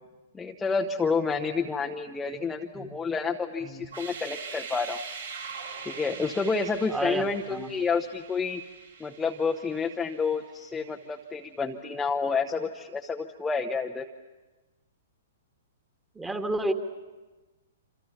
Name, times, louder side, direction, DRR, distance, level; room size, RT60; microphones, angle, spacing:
voice 1, 0.3-5.0 5.8-8.6 9.0-14.1, left 4 dB, 10° left, 2 dB, 1.0 m, -29 dB
sound 1, 3.8-10.7, right 5 dB, 70° right, 5.5 m, -42 dB
voice 2, 6.9-7.7 16.1-16.7, right 2 dB, 10° right, 6 dB, 2.0 m, -31 dB
27.5 x 27.0 x 7.2 m, 1.2 s
figure-of-eight pair, 110°, 0 cm